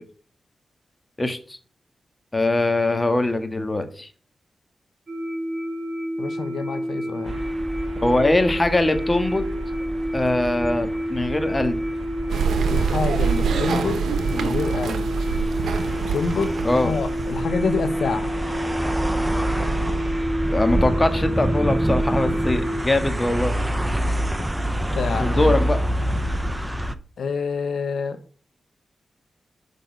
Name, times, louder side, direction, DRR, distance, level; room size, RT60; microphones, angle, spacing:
voice 1, 1.2-1.6 2.3-4.1 8.0-9.5 10.1-11.8 16.6-16.9 20.5-23.5 25.2-25.8, left 2 dB, 30° left, 8 dB, 1.6 m, -22 dB
sound 1, 5.1-22.8, equal, 50° right, 2.7 m, -28 dB
voice 2, 6.2-7.4 12.7-14.0 14.3-15.1 16.1-18.3 24.9-25.5 27.2-28.2, left 5 dB, 75° left, 8 dB, 1.1 m, -27 dB
sound 2, 7.3-26.9, right 1 dB, 15° right, 0.8 m, -27 dB
Applause waiting, 12.3-17.4, right 6 dB, 85° right, 1.0 m, -25 dB
6.8 x 5.4 x 6.8 m, 0.41 s
cardioid pair, 45°, 0 cm